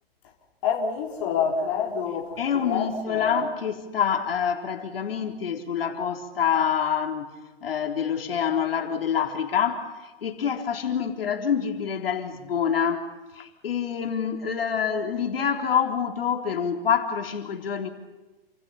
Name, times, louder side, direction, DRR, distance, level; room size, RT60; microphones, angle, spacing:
voice 1, 0.6-3.4, left 6 dB, 30° left, 3.7 m, -27 dB
voice 2, 2.4-7.3 7.6-13.1 13.3-17.9, left 7 dB, 70° left, 3.8 m, -26 dB
29.5 x 27.5 x 5.7 m
hypercardioid pair, 175°, 30 cm